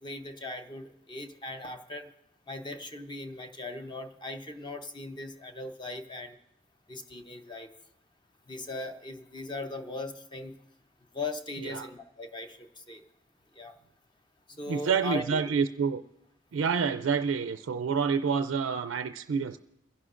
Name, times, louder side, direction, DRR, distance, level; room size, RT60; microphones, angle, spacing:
voice 1, 0.0-2.1 2.5-6.4 6.9-7.7 8.5-10.6 11.1-13.0 13.5-13.7 14.6-15.4, left 2 dB, 25° left, 6 dB, 0.7 m, -39 dB
voice 2, 14.7-16.0 16.5-19.6, right 6 dB, 90° right, 9 dB, 0.4 m, -28 dB
29.5 x 11.0 x 2.5 m, 0.87 s
head